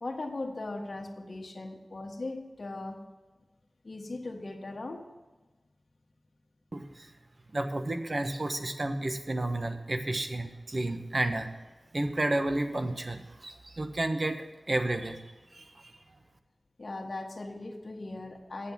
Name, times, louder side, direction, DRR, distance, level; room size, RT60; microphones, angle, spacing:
voice 1, 0.0-3.0 3.8-5.0 16.8-18.7, left 2 dB, 55° left, 0 dB, 1.5 m, -38 dB
voice 2, 6.7-7.1 7.5-11.5 11.9-15.2 15.5-15.6, right 2 dB, 50° right, 6 dB, 1.1 m, -31 dB
8.5 x 7.6 x 7.3 m, 1.2 s
wide cardioid pair, 50°, 0 cm